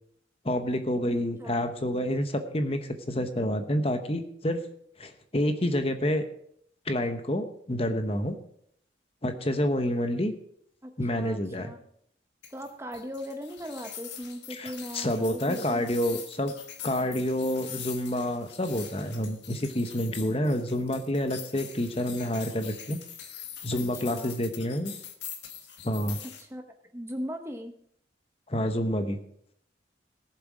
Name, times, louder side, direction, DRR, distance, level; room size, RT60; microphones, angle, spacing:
voice 1, 0.4-4.6 5.0-6.3 6.9-8.4 9.2-10.3 11.0-11.7 14.5-16.5 16.8-23.0 23.6-24.9 25.8-26.2 28.5-29.2, left 1 dB, 30° left, 8 dB, 1.0 m, -28 dB
voice 2, 1.1-1.6 10.8-11.8 12.5-15.8 16.1-16.2 23.7-24.4 26.2-26.6 26.9-27.7, equal, 15° right, 6 dB, 0.8 m, -39 dB
sound 1, 12.4-26.4, left 9 dB, 70° left, 1.6 m, -43 dB
17.5 x 7.4 x 4.9 m, 0.68 s
head